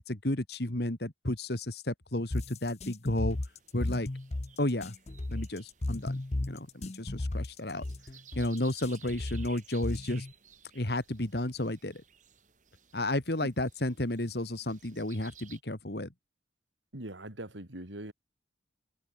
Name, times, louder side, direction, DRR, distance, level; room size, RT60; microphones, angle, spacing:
voice 1, 0.1-3.4 3.7-4.1 4.6-4.9 5.3-6.2 6.5-7.8 8.4-10.3 10.7-12.0 12.9-16.1, left 1 dB, 60° left, 2.4 m, -32 dB
sound 1, 2.3-10.3, left 2 dB, 35° left, 0.7 m, -35 dB
sound 2, 3.3-15.6, right 8 dB, 40° right, 5.5 m, -58 dB
voice 2, 16.9-18.1, right 1 dB, 90° right, 3.4 m, -42 dB
open air
head